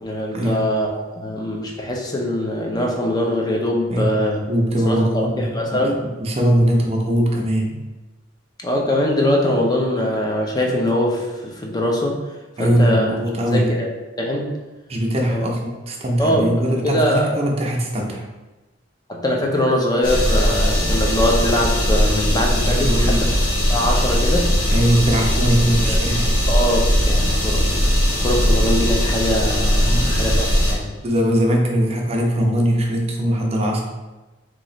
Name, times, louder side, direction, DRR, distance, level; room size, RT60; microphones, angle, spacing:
voice 1, 0.0-4.4 4.8-6.0 8.6-12.2 12.6-13.2 13.5-13.9 14.2-14.5 15.3-15.5 16.2-17.4 19.1-23.3 23.7-24.5 25.8-25.9 26.5-27.7 28.2-30.9, left 1 dB, 20° left, -1 dB, 0.5 m, -22 dB
voice 2, 4.5-7.8 12.6-13.7 14.9-18.2 22.6-23.3 24.7-26.3 29.8-30.2 31.0-33.8, equal, 30° right, 0 dB, 0.5 m, -21 dB
Vacuum Cleaner A, 20.0-30.7, equal, 45° left, 0.8 m, -19 dB
3.0 x 2.4 x 3.8 m, 1.1 s
head